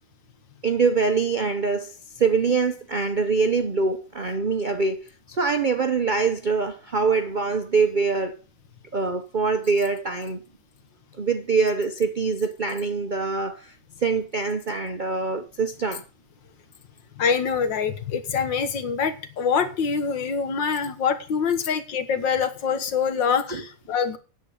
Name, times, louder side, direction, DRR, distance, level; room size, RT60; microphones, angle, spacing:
voice 1, 0.6-8.4 8.9-10.4 11.2-13.7 14.0-16.0 23.5-23.6, right 4 dB, 65° right, 0.4 m, -24 dB
voice 2, 17.2-24.2, left 6 dB, 90° left, 2.1 m, -25 dB
9.4 x 7.3 x 8.4 m
omnidirectional pair, 2.0 m